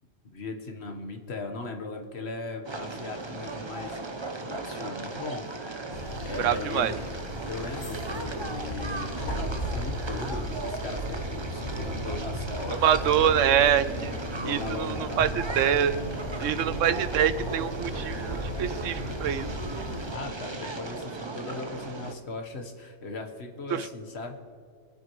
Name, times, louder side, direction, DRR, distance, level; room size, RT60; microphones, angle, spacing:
voice 1, 0.2-4.0 4.5-5.4 5.9-7.0 7.5-13.8 14.3-15.3 19.8-24.5, left 3 dB, 60° left, 4 dB, 1.4 m, -38 dB
sound 1, 2.6-22.1, right 3 dB, 25° right, 0.8 m, -37 dB
sound 2, 5.9-20.1, left 1 dB, 75° left, 2.2 m, -38 dB
voice 2, 6.4-7.0 12.8-14.1 14.5-15.9 16.4-19.5 19.8-19.9 23.7-23.9, right 9 dB, 80° right, 13 dB, 1.0 m, -25 dB
sound 3, 8.1-19.6, right 1 dB, 15° left, 3.0 m, -39 dB
26.0 x 9.5 x 3.1 m, 2.2 s
omnidirectional pair, 1.3 m